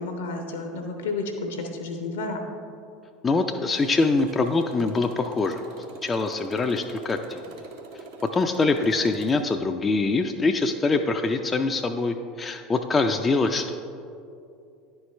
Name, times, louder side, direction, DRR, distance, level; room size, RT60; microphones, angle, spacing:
voice 1, 0.0-2.4, left 3 dB, 75° left, 4 dB, 0.9 m, -31 dB
voice 2, 3.2-5.6 6.0-7.6 8.2-13.7, left 3 dB, 25° left, 5 dB, 0.4 m, -24 dB
Motorcycle, 3.7-9.5, right 3 dB, 70° right, 0.9 m, -44 dB
10.5 x 4.5 x 3.2 m, 2.5 s
figure-of-eight pair, 75°, 0 cm